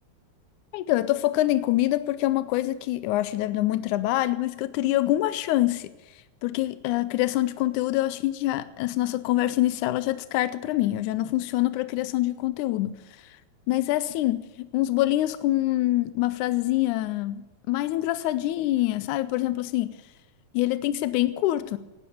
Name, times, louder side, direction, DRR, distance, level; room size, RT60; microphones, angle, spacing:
voice 1, 0.7-5.9 6.4-13.4 13.7-17.4 17.7-19.9 20.5-21.8, left 15 dB, 85° left, 2.1 m, -25 dB
17.5 x 9.7 x 8.5 m
omnidirectional pair, 3.4 m